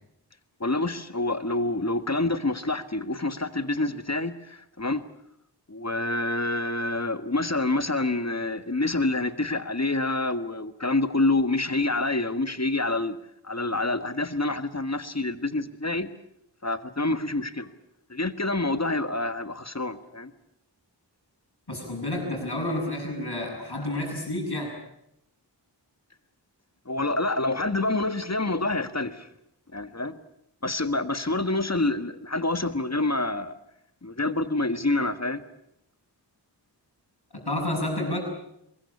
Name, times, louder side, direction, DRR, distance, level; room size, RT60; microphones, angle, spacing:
voice 1, 0.6-5.0 5.7-13.2 13.4-16.1 16.6-17.7 18.1-20.3 26.8-29.3 29.7-30.2 30.6-33.6 34.0-35.4, left 2 dB, 40° left, 11 dB, 1.6 m, -27 dB
voice 2, 21.7-24.8 37.3-38.2, left 1 dB, 65° left, -7 dB, 7.1 m, -30 dB
23.5 x 21.5 x 8.5 m, 0.78 s
wide cardioid pair, 45°, 42 cm